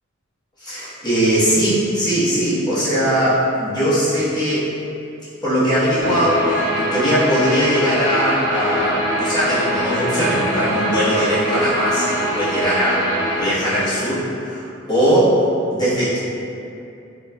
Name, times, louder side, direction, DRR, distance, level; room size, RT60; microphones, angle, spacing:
voice 1, 0.6-4.7 5.4-13.1 13.4-15.4 15.7-16.2, equal, 20° left, -12 dB, 0.9 m, -20 dB
Guitar, 6.0-13.4, equal, 10° right, 0.9 m, -23 dB
3.9 x 2.2 x 2.2 m, 2.7 s
head